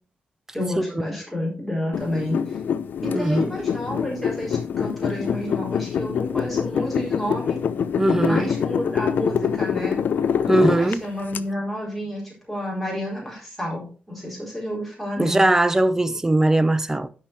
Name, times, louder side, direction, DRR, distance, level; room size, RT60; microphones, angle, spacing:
voice 1, 0.5-2.6 3.0-7.6 8.2-10.0 10.8-15.5, equal, ahead, 4.3 m, -30 dB
sound 1, 1.9-11.4, left 7 dB, 85° left, 0.6 m, -25 dB
voice 2, 3.1-3.5 8.0-8.5 10.5-11.0 15.2-17.1, right 1 dB, 15° right, 0.7 m, -20 dB
12.0 x 5.6 x 4.5 m
wide cardioid pair, 125°, 3 cm